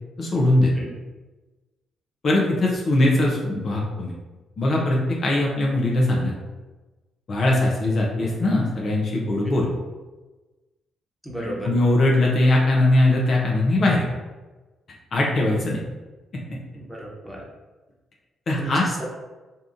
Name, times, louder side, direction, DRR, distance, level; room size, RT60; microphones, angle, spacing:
voice 1, 0.2-0.7 2.2-4.1 4.6-6.3 7.3-9.7 11.4-14.0 15.1-15.8 16.3-16.6 18.5-18.9, left 1 dB, 50° left, -2 dB, 0.6 m, -21 dB
voice 2, 11.2-11.7 16.7-17.4 18.6-19.1, right 1 dB, ahead, -3 dB, 1.1 m, -33 dB
2.7 x 2.4 x 3.6 m, 1.2 s
hypercardioid pair, 45°, 0 cm